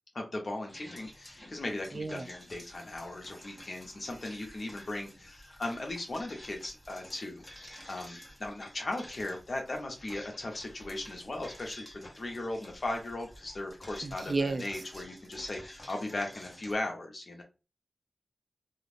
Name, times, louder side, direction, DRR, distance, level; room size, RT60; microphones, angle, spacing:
voice 1, 0.1-17.4, left 2 dB, 55° left, 0.9 m, -38 dB
sound 1, 0.7-16.7, left 1 dB, 20° left, 1.0 m, -51 dB
voice 2, 1.9-2.3 14.0-14.7, right 3 dB, 50° right, 0.3 m, -32 dB
2.5 x 2.4 x 3.3 m
wide cardioid pair, 100°, 0 cm